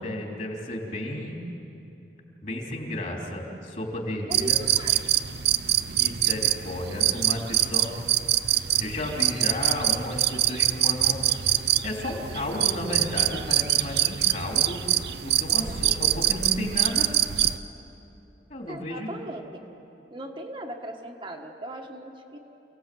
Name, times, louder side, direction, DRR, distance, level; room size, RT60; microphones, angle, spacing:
voice 1, 0.0-1.4 2.4-4.6 5.9-7.9 8.7-11.2 11.8-14.8 15.2-17.1 18.5-19.1, left 1 dB, 45° left, 0 dB, 3.4 m, -33 dB
voice 2, 4.2-5.2 18.7-19.4 20.1-22.4, right 1 dB, 30° right, 1 dB, 1.4 m, -38 dB
sound 1, 4.3-17.6, right 13 dB, 70° right, 0.6 m, -24 dB
28.5 x 18.0 x 7.7 m, 2.9 s
head